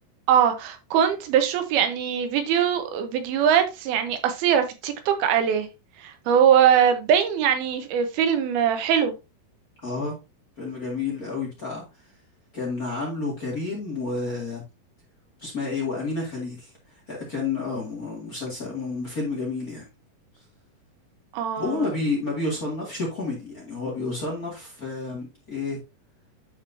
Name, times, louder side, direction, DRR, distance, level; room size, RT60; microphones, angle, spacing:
voice 1, 0.3-5.7 6.0-9.1 21.3-21.8, right 8 dB, 85° right, 2.9 m, -21 dB
voice 2, 9.8-10.2 10.6-11.8 12.5-14.6 15.4-16.7 17.1-19.9 21.5-25.8, left 3 dB, 30° left, 1.8 m, -30 dB
10.5 x 4.6 x 2.7 m
omnidirectional pair, 4.4 m